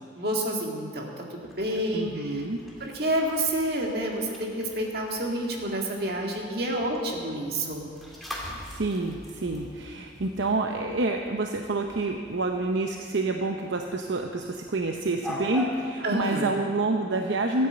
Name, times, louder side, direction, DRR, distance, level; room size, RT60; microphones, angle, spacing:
voice 1, 0.2-2.4 2.8-7.9 16.0-16.5, right 1 dB, 55° right, 0 dB, 2.0 m, -29 dB
sound 1, 1.4-15.9, equal, ahead, 1.9 m, -44 dB
voice 2, 1.9-2.6 8.7-17.7, right 2 dB, 75° right, 3 dB, 0.7 m, -28 dB
13.0 x 9.1 x 7.8 m, 2.3 s
head